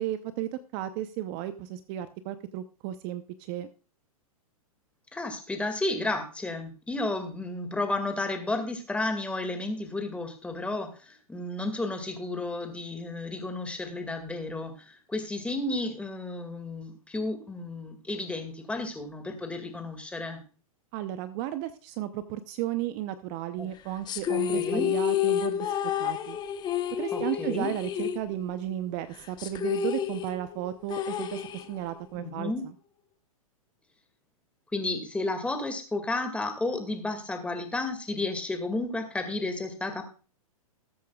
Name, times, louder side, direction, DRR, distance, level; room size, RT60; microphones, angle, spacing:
voice 1, 0.0-3.7 20.9-25.7 26.0-26.4 27.0-31.4 31.7-32.5, right 13 dB, 40° right, 12 dB, 0.8 m, -34 dB
voice 2, 5.1-20.4 23.6-23.7 24.3-24.9 27.1-27.7 32.1-32.6 34.7-40.0, left 2 dB, 5° left, 5 dB, 2.1 m, -32 dB
sound 1, 24.1-28.7 29.0-29.1 29.4-32.0, left 10 dB, 25° left, 1.1 m, -30 dB
20.0 x 8.4 x 2.4 m, 0.36 s
hypercardioid pair, 125°, 19 cm